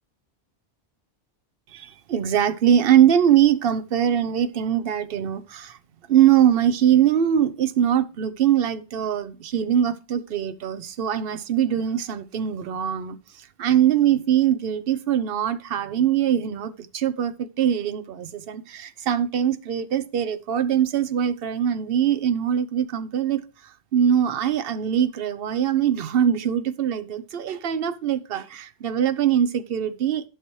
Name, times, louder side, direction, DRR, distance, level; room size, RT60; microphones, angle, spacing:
voice 1, 1.7-5.8 6.1-30.2, right 9 dB, 65° right, 0.9 m, -22 dB
11.0 x 5.9 x 3.1 m
omnidirectional pair, 1.1 m